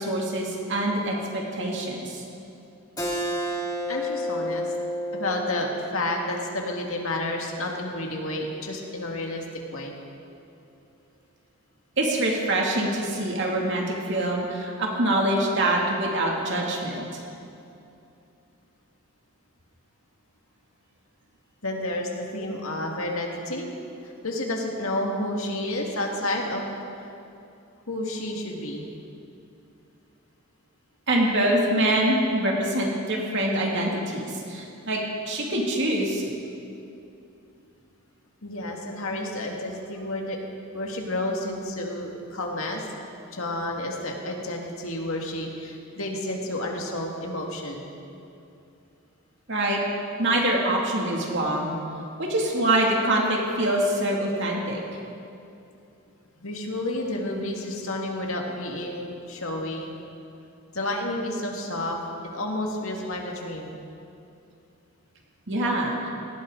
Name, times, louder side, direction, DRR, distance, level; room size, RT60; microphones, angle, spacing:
voice 1, 0.0-2.2 12.0-17.1 31.1-35.0 35.2-36.2 49.5-49.8 50.2-51.7 52.2-54.8 65.5-66.1, right 1 dB, 55° right, -2 dB, 2.6 m, -25 dB
Keyboard (musical), 3.0-8.2, equal, 15° left, 1.9 m, -32 dB
voice 2, 3.9-4.7 5.1-9.5 9.7-9.9 21.6-23.7 24.0-26.6 27.9-28.9 38.4-40.4 40.7-42.8 43.3-47.8 56.4-59.9 60.7-62.0 62.3-63.7, left 1 dB, 70° left, 0 dB, 2.1 m, -30 dB
18.0 x 17.0 x 4.0 m, 2.7 s
head